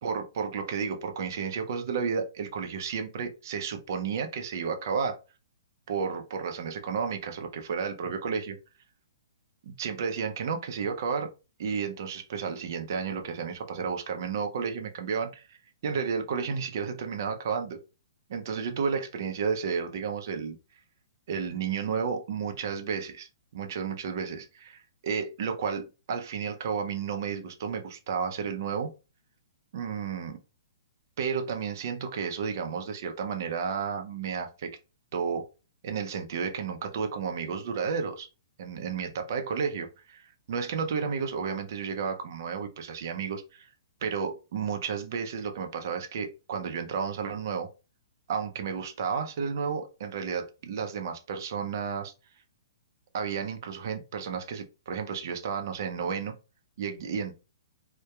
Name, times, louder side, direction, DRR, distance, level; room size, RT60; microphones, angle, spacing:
voice 1, 0.0-5.2 5.9-8.6 9.6-11.3 11.6-15.6 15.8-17.8 18.3-20.6 21.3-28.9 29.7-30.4 31.2-34.8 35.1-35.5 35.8-38.3 38.6-43.7 44.0-47.7 48.3-52.1 53.1-56.4 56.8-57.3, right 6 dB, 55° right, 5 dB, 0.5 m, -32 dB
2.7 x 2.1 x 2.2 m, 0.31 s
hypercardioid pair, 150°, 2 cm